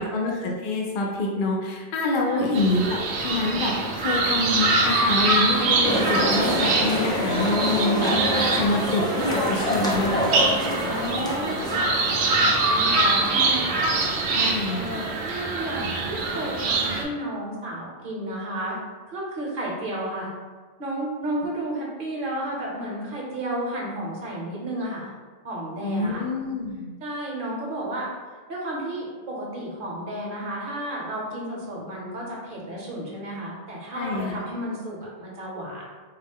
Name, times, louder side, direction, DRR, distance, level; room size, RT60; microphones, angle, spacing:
voice 1, 0.0-10.3 14.3-15.0 25.8-26.9 33.9-34.4, left 2 dB, 60° left, -1 dB, 0.6 m, -26 dB
voice 2, 2.3-2.6 10.8-11.9 12.2-13.8 14.7-18.8 19.1-20.3 20.8-25.1 25.4-26.3 27.0-28.1 28.5-35.8, right 1 dB, 50° right, -3 dB, 1.0 m, -32 dB
sound 1, 2.5-17.0, right 3 dB, 70° right, 0.8 m, -24 dB
sound 2, 5.8-12.3, equal, 5° left, 0.3 m, -26 dB
4.2 x 2.0 x 3.5 m, 1.4 s
omnidirectional pair, 1.2 m